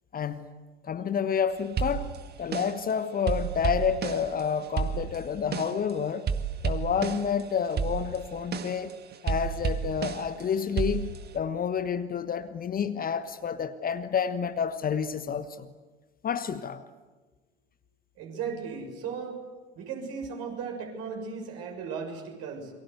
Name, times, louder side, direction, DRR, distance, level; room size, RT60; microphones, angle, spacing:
voice 1, 0.1-0.4 0.8-2.1 2.4-6.3 6.6-9.0 9.2-15.7 16.2-16.8, left 7 dB, 25° left, 1.2 m, -29 dB
sound 1, 1.8-2.9 3.3-5.9 6.3-7.4 7.7-10.4 10.8-11.4, right 6 dB, 30° right, 1.8 m, -31 dB
voice 2, 18.2-19.4 19.7-22.7, right 6 dB, 45° right, 6.8 m, -36 dB
28.5 x 24.0 x 8.1 m
figure-of-eight pair, 70°, 33 cm